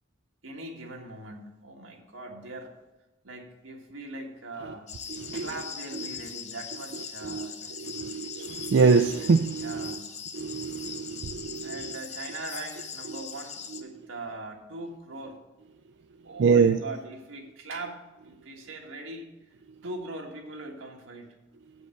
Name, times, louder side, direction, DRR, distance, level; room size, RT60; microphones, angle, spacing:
voice 1, 0.4-2.7 3.2-4.9 5.3-8.1 9.6-10.1 11.6-15.4 16.2-19.3 19.8-21.3, right 2 dB, 90° right, 1 dB, 1.6 m, -41 dB
sound 1, 4.9-13.8, left 7 dB, 35° left, 0.7 m, -41 dB
voice 2, 5.1-5.5 7.2-7.5 7.8-10.0 10.3-12.0 13.1-13.2 13.7-13.8 16.4-16.8, right 5 dB, 65° right, 7 dB, 0.4 m, -25 dB
8.2 x 5.3 x 7.6 m, 1.0 s
head